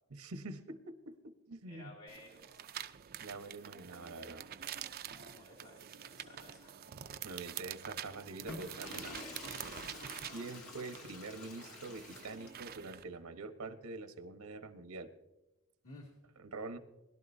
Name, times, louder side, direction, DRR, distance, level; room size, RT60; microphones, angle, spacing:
voice 1, 0.1-2.0 3.2-4.4 7.2-9.1 10.3-15.1 16.4-16.8, right 3 dB, 80° right, 9 dB, 1.1 m, -45 dB
voice 2, 1.7-2.8 4.9-6.8 9.0-9.4 15.8-16.1, left 2 dB, 70° left, -5 dB, 2.6 m, -55 dB
sound 1, 2.1-13.0, right 10 dB, 45° right, 0.5 m, -47 dB
Water / Toilet flush, 8.3-12.8, left 2 dB, 90° left, 2.2 m, -49 dB
21.0 x 12.0 x 2.7 m, 1.0 s
head